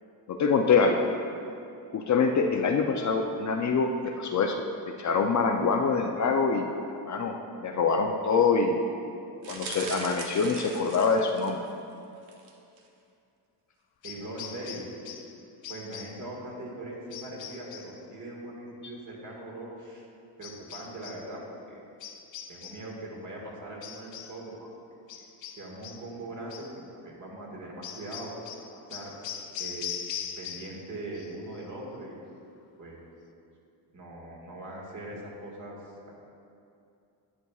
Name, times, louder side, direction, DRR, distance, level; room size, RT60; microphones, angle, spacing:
voice 1, 0.3-1.1 1.9-4.6 5.0-7.3 7.6-8.8 9.5-11.6, left 5 dB, 40° left, 3 dB, 0.4 m, -25 dB
sound 1, 9.4-11.7 12.2-12.5 12.8-12.9, right 4 dB, 90° right, 1.0 m, -40 dB
sound 2, 14.0-15.4 15.6-16.3 17.1-18.0 20.4-21.3 22.0-22.9 23.8-24.4 25.1-26.1 26.5-26.8 27.8-30.9 31.1-31.6, left 8 dB, 85° left, 0.6 m, -41 dB
voice 2, 14.0-14.9 15.7-20.1 20.4-21.4 21.7-21.8 22.5-24.7 25.6-28.3 28.7-29.1 29.6-29.9 30.4-32.2 32.8-33.0 33.9-35.8 36.1-36.2, right 1 dB, 45° right, -3 dB, 1.7 m, -41 dB
11.0 x 6.9 x 2.3 m, 2.6 s
cardioid pair, 115°, 44 cm